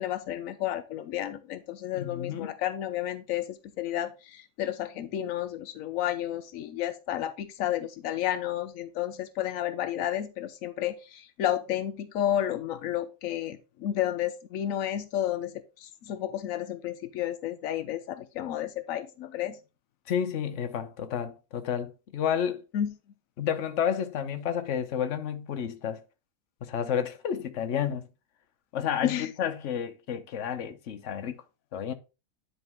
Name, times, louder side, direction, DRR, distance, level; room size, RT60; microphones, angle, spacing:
voice 1, 0.0-3.5 3.8-19.6 22.7-22.9 29.0-29.3, left 11 dB, 90° left, 0.7 m, -31 dB
voice 2, 1.9-2.5 20.1-22.6 23.4-26.0 26.6-28.1 28.7-31.4 31.7-31.9, left 8 dB, 60° left, 0.8 m, -31 dB
9.9 x 4.0 x 3.5 m
omnidirectional pair, 2.1 m